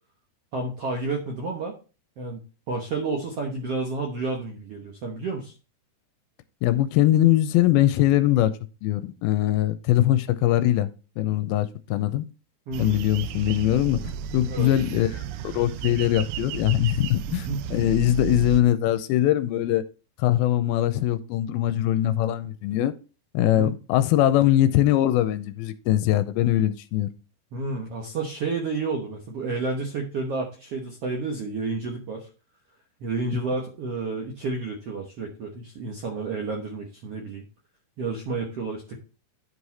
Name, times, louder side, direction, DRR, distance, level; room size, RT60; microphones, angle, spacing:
voice 1, 0.5-1.7 2.2-2.4 2.7-5.5 12.7-13.0 14.4-14.7 17.3-17.7 23.4-23.7 27.5-32.3 33.0-37.4 38.0-39.0, right 3 dB, 65° right, 1.5 m, -30 dB
voice 2, 6.6-8.5 8.8-10.9 11.2-12.3 12.8-14.0 14.3-19.8 20.2-22.9 23.3-27.1 33.3-33.4, left 13 dB, 85° left, 2.5 m, -22 dB
sound 1, 12.7-18.6, right 10 dB, 85° right, 2.4 m, -33 dB
10.5 x 4.9 x 4.1 m
omnidirectional pair, 4.4 m